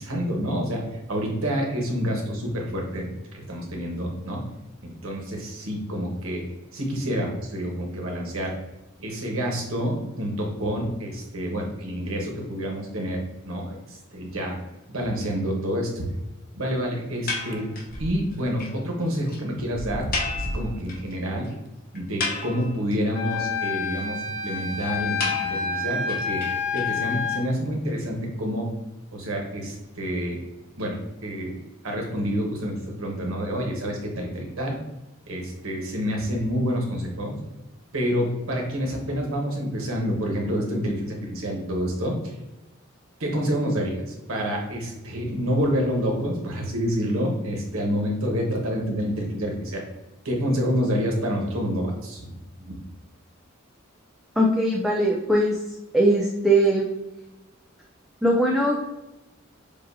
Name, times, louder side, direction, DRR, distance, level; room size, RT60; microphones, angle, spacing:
voice 1, 0.0-4.4 4.8-6.5 6.7-8.5 9.0-14.6 14.9-16.0 16.5-17.7 18.0-21.5 21.9-26.4 26.7-28.7 29.1-30.4 30.8-31.5 31.8-34.8 35.3-37.4 37.9-42.2 43.2-44.0 44.3-49.8 50.2-52.3 52.6-52.8, equal, 85° right, 0 dB, 1.2 m, -28 dB
sound 1, 17.3-18.0 18.3-18.4 18.6-18.7 19.0-19.1 19.3-19.4 20.1-21.1 21.4-21.5 21.9-22.9 25.2-27.2, left 3 dB, 45° left, 1.0 m, -32 dB
sound 2, 17.5-18.2 18.6-18.7 19.3-19.4 19.7-20.9, right 1 dB, 65° right, 0.6 m, -32 dB
Wind instrument woodwind instrument, 23.2-27.4, left 5 dB, 85° left, 1.1 m, -28 dB
voice 2, 54.4-55.6 55.9-56.9 58.2-58.7, right 1 dB, ahead, -3 dB, 0.4 m, -20 dB
6.8 x 2.5 x 2.7 m, 1.0 s
head